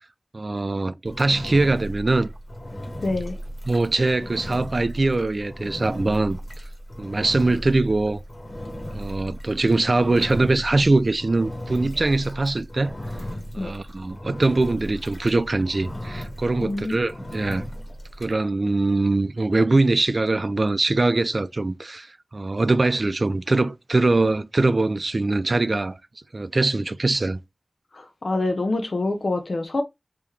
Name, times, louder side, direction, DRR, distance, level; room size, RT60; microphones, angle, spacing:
voice 1, 0.3-2.3 3.7-6.4 7.0-8.2 8.9-12.9 13.5-17.7 18.2-26.0 26.3-27.4, right 2 dB, 55° right, 0.4 m, -22 dB
Engine, 1.0-18.3, equal, 45° left, 1.6 m, -36 dB
voice 2, 3.0-3.4 13.6-13.7 16.6-17.0 27.9-29.8, left 2 dB, 75° left, 0.4 m, -26 dB
3.5 x 2.9 x 3.1 m
wide cardioid pair, 65°, 0 cm